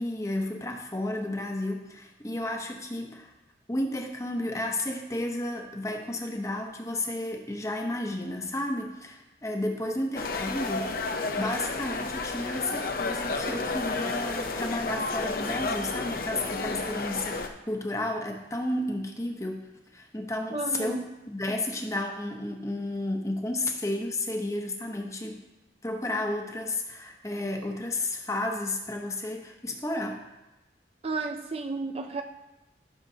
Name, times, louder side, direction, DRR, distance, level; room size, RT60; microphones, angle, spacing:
voice 1, 0.0-3.3 3.7-11.0 11.4-19.7 19.9-25.4 25.8-30.2, left 1 dB, 15° left, 0.9 m, -32 dB
sound 1, 10.2-17.5, left 3 dB, 55° left, 0.7 m, -31 dB
voice 2, 20.5-21.0 31.0-32.2, right 3 dB, 35° right, 0.4 m, -32 dB
14.5 x 6.7 x 2.8 m
head